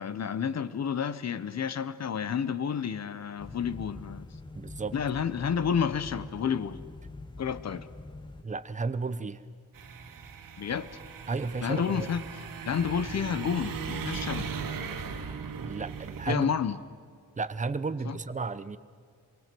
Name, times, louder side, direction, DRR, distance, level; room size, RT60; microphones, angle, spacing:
voice 1, 0.0-4.3 4.9-6.8 7.4-7.9 10.6-10.9 11.6-14.6 16.3-16.8 18.0-18.2, left 7 dB, 55° left, 1.0 m, -30 dB
sound 1, 3.4-8.4, left 2 dB, 15° left, 0.8 m, -44 dB
voice 2, 4.5-4.9 8.4-9.4 11.3-12.1 15.5-16.5 17.4-18.8, right 4 dB, 25° right, 0.8 m, -33 dB
sound 2, 9.7-16.3, right 5 dB, 85° right, 2.1 m, -38 dB
26.0 x 23.0 x 7.7 m
wide cardioid pair, 155°, 32 cm